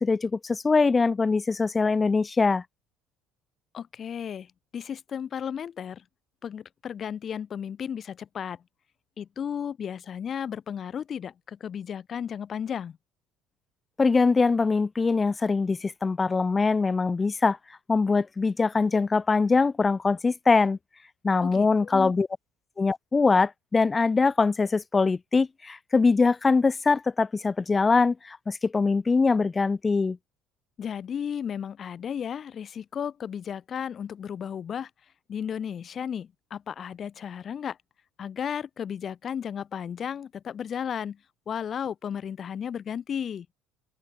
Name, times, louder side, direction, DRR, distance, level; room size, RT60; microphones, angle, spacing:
voice 1, 0.0-2.6 14.0-17.6 17.9-20.8 21.2-22.3 22.8-30.2, left 4 dB, 15° left, 0.3 m, -23 dB
voice 2, 3.7-6.0 6.4-8.6 9.2-13.0 21.4-22.1 30.8-34.9 35.3-37.8 38.2-41.2 41.5-43.5, left 8 dB, 30° left, 2.4 m, -34 dB
open air
cardioid pair, 160°, 0 cm